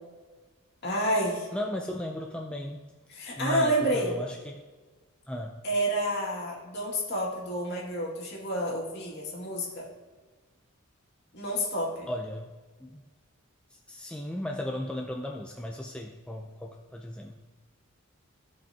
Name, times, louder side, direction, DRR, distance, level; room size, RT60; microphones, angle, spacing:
voice 1, 0.8-1.5 3.1-4.2 5.6-9.8 11.3-12.1, right 1 dB, 50° left, -3 dB, 2.2 m, -29 dB
voice 2, 1.5-2.9 3.4-4.6 5.3-5.6 12.1-12.5 12.8-13.0 13.7-17.4, left 1 dB, 5° left, 1 dB, 0.4 m, -36 dB
15.0 x 5.3 x 2.8 m, 1.4 s
head